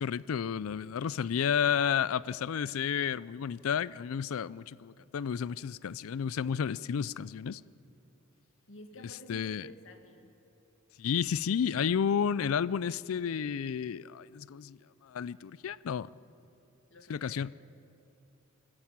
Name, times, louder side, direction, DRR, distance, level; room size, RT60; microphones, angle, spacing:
voice 1, 0.0-7.6 9.3-9.7 11.0-14.8 15.0-16.1 17.1-17.5, left 7 dB, 90° left, 0.4 m, -31 dB
voice 2, 8.7-10.3 16.9-17.4, left 1 dB, 65° left, 1.8 m, -51 dB
23.5 x 14.0 x 8.8 m
head